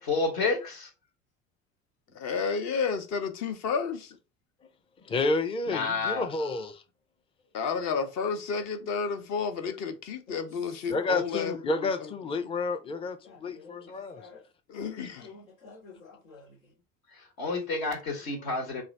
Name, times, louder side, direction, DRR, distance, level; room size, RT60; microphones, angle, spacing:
voice 1, 0.0-0.9 5.7-6.3 17.1-18.8, left 3 dB, 60° left, 1.2 m, -30 dB
voice 2, 2.1-4.2 7.5-12.1 14.7-15.3, left 5 dB, 45° left, 0.8 m, -31 dB
voice 3, 5.0-6.8 10.9-14.2, left 3 dB, 15° left, 0.5 m, -30 dB
voice 4, 13.2-13.9 14.1-14.4 15.2-16.5 18.4-18.5, left 4 dB, 80° left, 1.3 m, -50 dB
3.2 x 2.5 x 4.0 m
figure-of-eight pair, 65°, 40 cm